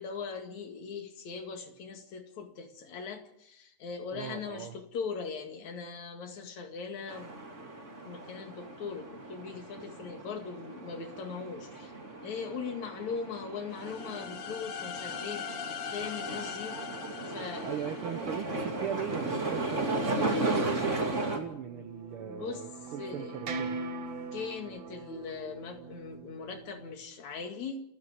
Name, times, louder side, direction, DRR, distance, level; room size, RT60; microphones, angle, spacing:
voice 1, 0.0-7.4 8.1-11.9 12.2-16.8 17.2-17.8 21.7-21.9 22.2-22.6 23.0-23.4 24.3-27.8, left 5 dB, 70° left, 5 dB, 3.5 m, -40 dB
voice 2, 4.1-4.8 17.6-23.8, right 9 dB, 70° right, 9 dB, 1.3 m, -39 dB
sound 1, 7.1-21.4, right 2 dB, 25° right, 2.7 m, -35 dB
sound 2, 13.7-18.6, left 7 dB, 55° left, 2.3 m, -41 dB
sound 3, 21.3-26.9, right 3 dB, 50° right, 2.0 m, -41 dB
28.5 x 9.8 x 9.6 m, 0.76 s
omnidirectional pair, 3.4 m